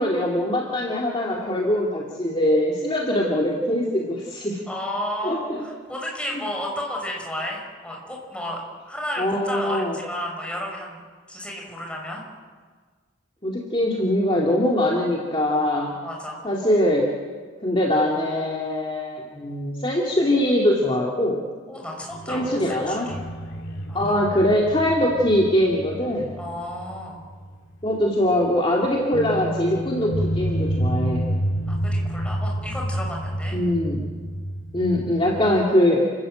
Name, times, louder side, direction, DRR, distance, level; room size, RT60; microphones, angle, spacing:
voice 1, 0.0-4.6 5.2-5.6 9.2-10.0 13.4-15.9 16.4-17.1 17.6-21.4 22.3-23.1 23.9-26.3 27.8-31.3 33.5-34.0 34.7-36.1, left 1 dB, 25° left, -2 dB, 2.4 m, -22 dB
voice 2, 4.7-8.6 8.9-11.0 11.3-12.2 16.0-16.4 21.7-23.2 23.9-24.1 26.4-27.2 31.7-33.6, left 1 dB, 5° left, -1 dB, 5.9 m, -32 dB
sound 1, 22.1-27.5 27.8-27.9 29.1-35.7, right 1 dB, 70° left, 2.1 m, -29 dB
29.5 x 14.5 x 8.9 m, 1.5 s
head